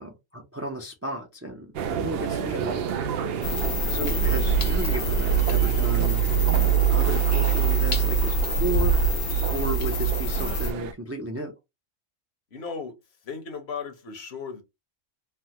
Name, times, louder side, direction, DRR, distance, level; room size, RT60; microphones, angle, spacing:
voice 1, 0.0-2.9 3.9-6.3 6.5-8.9 9.5-11.5, right 1 dB, 25° right, 0.3 m, -33 dB
sound 1, 1.7-10.9, right 7 dB, 65° right, 0.7 m, -32 dB
sound 2, 3.4-10.7, right 5 dB, 80° left, 1.2 m, -23 dB
voice 2, 12.5-12.9 13.2-14.6, left 5 dB, 60° left, 1.0 m, -36 dB
3.4 x 2.1 x 2.8 m
omnidirectional pair, 1.3 m